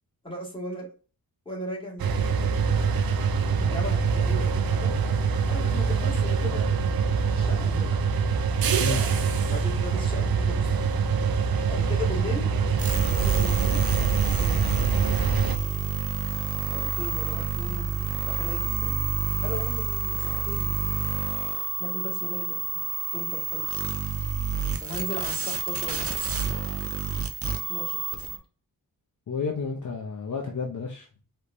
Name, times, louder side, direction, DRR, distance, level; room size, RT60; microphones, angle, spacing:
voice 1, 0.2-0.9 1.5-2.6 3.6-4.9 5.5-7.9 9.5-10.9 11.7-12.5 13.0-13.8 14.2-15.1 16.7-18.9 19.4-20.7 21.8-22.8 23.1-23.8 24.8-26.1 27.7-28.3, left 1 dB, 15° left, 2.2 m, -38 dB
sound 1, 2.0-15.6, right 5 dB, 75° right, 0.7 m, -24 dB
sound 2, 12.8-28.4, right 6 dB, 40° right, 0.7 m, -28 dB
voice 2, 29.3-31.0, left 4 dB, 55° left, 0.9 m, -31 dB
4.9 x 3.3 x 2.7 m
wide cardioid pair, 110°, 35 cm